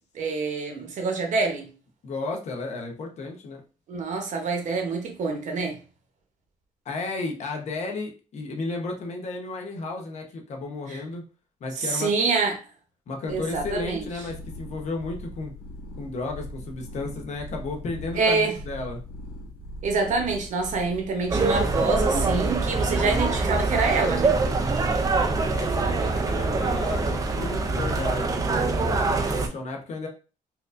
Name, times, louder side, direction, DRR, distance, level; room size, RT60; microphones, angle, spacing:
voice 1, 0.1-1.7 3.9-5.8 10.9-11.0 11.8-12.6 13.3-14.1 18.1-18.5 19.8-24.4, right 4 dB, 55° right, 0.9 m, -26 dB
voice 2, 2.0-3.6 6.8-11.2 11.6-12.1 13.1-15.5 16.0-19.0 25.5-30.1, left 3 dB, 50° left, 0.8 m, -33 dB
sound 1, 13.3-23.6, equal, 80° left, 1.7 m, -41 dB
sound 2, 21.3-29.5, right 3 dB, 25° right, 0.4 m, -24 dB
4.3 x 2.6 x 2.5 m
cardioid pair, 175°, 15 cm